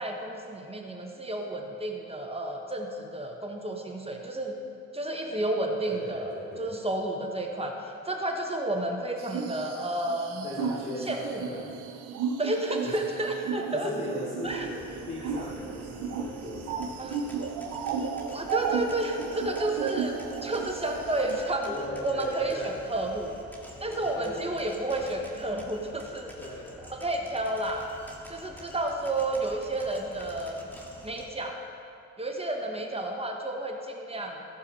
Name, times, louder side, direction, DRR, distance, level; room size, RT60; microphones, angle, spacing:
voice 1, 0.0-4.6 4.9-10.5 11.0-11.5 12.4-13.9 14.4-14.7 17.0-17.2 18.3-21.7 22.0-23.4 23.8-26.3 26.9-27.9 28.3-30.6 31.0-31.6 32.2-34.4, right 1 dB, 20° right, 2 dB, 1.1 m, -31 dB
voice 2, 5.9-6.7 10.4-11.7 12.8-13.0 13.7-17.2 21.7-22.8 23.9-24.4 26.4-26.9, left 1 dB, 30° left, -7 dB, 2.8 m, -38 dB
sound 1, 9.2-21.4, right 6 dB, 85° right, 0.8 m, -34 dB
sound 2, 14.4-31.3, equal, 5° left, 1.7 m, -49 dB
15.0 x 6.9 x 4.2 m, 2.6 s
cardioid pair, 90°, 30 cm